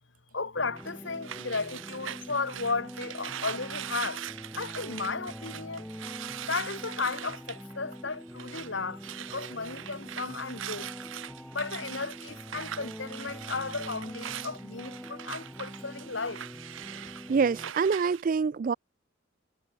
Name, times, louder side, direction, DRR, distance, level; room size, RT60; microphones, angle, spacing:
voice 1, 0.3-4.2 4.6-5.9 6.4-10.9 11.5-16.4, left 4 dB, 65° left, 1.8 m, -34 dB
sound 1, 0.5-17.7, equal, 5° left, 1.1 m, -44 dB
sound 2, 0.8-8.7 9.0-18.2, right 10 dB, 75° right, 0.8 m, -42 dB
voice 2, 17.0-18.7, right 5 dB, 40° right, 0.3 m, -26 dB
head